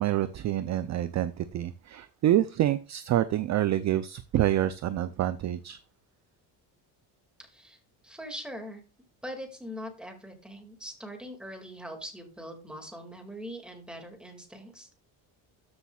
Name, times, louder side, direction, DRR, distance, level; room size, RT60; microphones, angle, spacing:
voice 1, 0.0-5.8, right 12 dB, 40° right, 13 dB, 0.5 m, -27 dB
voice 2, 7.4-7.8 8.0-8.8 9.2-14.9, equal, ahead, 3 dB, 2.1 m, -42 dB
13.5 x 7.0 x 2.3 m, 0.33 s
cardioid pair, 135°, 43 cm